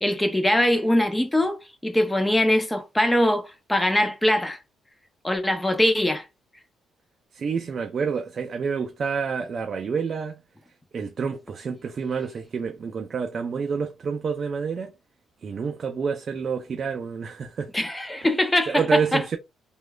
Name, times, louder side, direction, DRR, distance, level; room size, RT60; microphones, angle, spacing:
voice 1, 0.0-1.6 1.8-4.6 5.2-6.3 17.7-19.2, left 1 dB, 10° left, 0.6 m, -22 dB
voice 2, 7.3-10.4 10.9-14.9 15.4-17.7 18.7-19.4, right 5 dB, 50° right, 0.4 m, -28 dB
3.0 x 2.3 x 2.2 m
cardioid pair, 90°, 0 cm